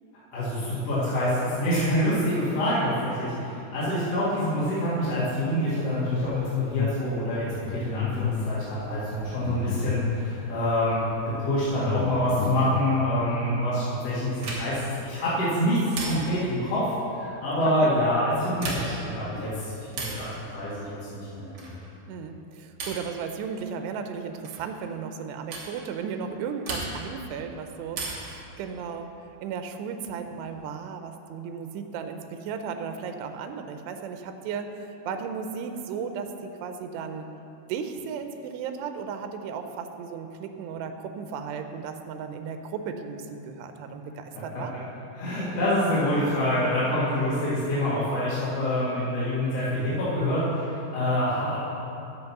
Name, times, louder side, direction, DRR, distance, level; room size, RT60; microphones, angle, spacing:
voice 1, 0.3-3.3 3.7-16.8 17.2-21.8 44.3-44.4 45.2-51.6, left 1 dB, 45° left, -10 dB, 2.5 m, -26 dB
sound 1, 6.1-7.0 7.3-10.4 11.0-11.2 11.5-12.8, left 8 dB, 90° left, 2.7 m, -31 dB
sound 2, 14.4-14.9 15.9-16.5 18.5-19.1 19.9-20.3 21.5-21.9 22.8-23.1 24.4-24.7 25.5-25.7 26.6-27.2 27.9-28.4 29.9-30.5, right 3 dB, 55° right, 2.3 m, -35 dB
voice 2, 22.1-29.1 29.4-37.3 37.7-44.7, right 6 dB, 90° right, 7 dB, 2.9 m, -35 dB
11.0 x 7.8 x 5.9 m, 2.9 s
omnidirectional pair, 4.8 m